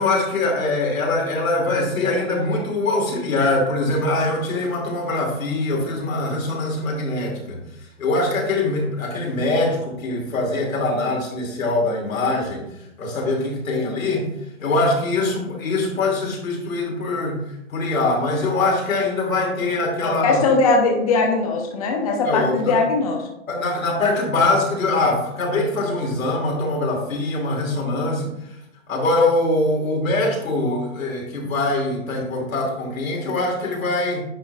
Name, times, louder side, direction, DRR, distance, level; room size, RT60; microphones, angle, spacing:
voice 1, 0.0-7.6 8.0-12.7 13.0-14.3 14.6-17.4 17.7-20.4 22.2-22.8 23.5-28.6 28.9-34.2, left 2 dB, 90° left, -1 dB, 2.6 m, -23 dB
voice 2, 20.0-23.3, left 3 dB, 30° left, 1 dB, 0.8 m, -20 dB
9.7 x 4.7 x 2.4 m, 0.83 s
hypercardioid pair, 170°, 40 cm